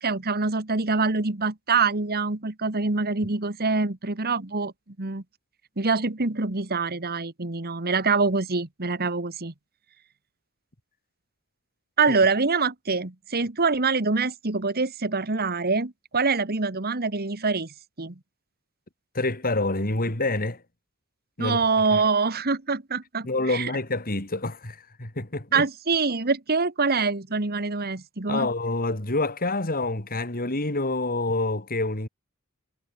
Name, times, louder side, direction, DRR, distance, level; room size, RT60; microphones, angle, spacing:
voice 1, 0.0-4.7 5.0-5.2 5.8-9.5 12.0-18.2 21.4-23.7 25.5-28.5, right 4 dB, 45° right, 1.7 m, -25 dB
voice 2, 19.2-20.6 21.4-21.6 23.2-25.6 28.3-32.1, left 2 dB, 40° left, 3.6 m, -27 dB
head